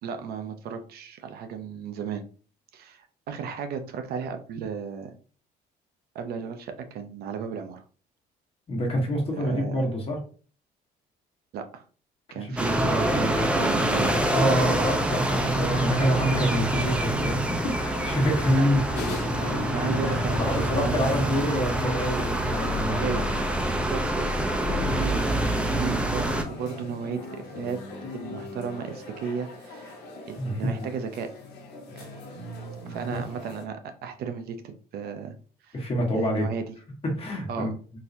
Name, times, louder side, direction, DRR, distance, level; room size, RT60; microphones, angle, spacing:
voice 1, 0.0-2.2 2.7-5.1 6.1-7.8 9.4-9.8 11.5-11.8 12.3-15.0 18.6-18.7 19.7-21.3 22.8-23.3 23.7-24.3 24.9-25.4 25.7-27.8 28.1-30.0 30.3-31.3 32.0-32.1 32.9-35.3 35.6-35.8 36.2-36.7 37.5-37.7, right 6 dB, 65° right, 7 dB, 0.5 m, -34 dB
voice 2, 8.7-10.2 12.4-12.5 12.8-12.9 14.3-18.8 20.4-23.2 30.4-30.6 33.1-33.2 35.7-36.5 37.0-37.7, equal, 35° left, 1 dB, 1.3 m, -26 dB
sound 1, 12.6-26.4, right 1 dB, 5° right, 0.4 m, -26 dB
sound 2, 15.4-33.6, left 2 dB, 85° left, 1.0 m, -39 dB
3.9 x 2.8 x 2.6 m, 0.41 s
cardioid pair, 110°, 17 cm